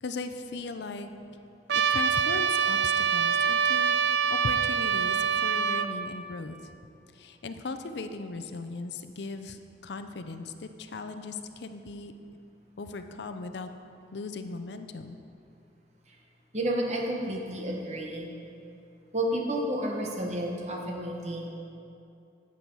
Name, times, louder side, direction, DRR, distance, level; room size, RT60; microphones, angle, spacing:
voice 1, 0.0-1.1 1.7-6.6 7.1-12.1 12.8-13.7 14.1-15.2, left 3 dB, 75° left, 8 dB, 0.5 m, -38 dB
Trumpet, 1.7-5.9, right 7 dB, 75° right, 0.4 m, -25 dB
voice 2, 16.5-18.3 19.1-21.5, right 1 dB, 40° right, 0 dB, 1.1 m, -31 dB
9.4 x 8.4 x 4.7 m, 2.6 s
head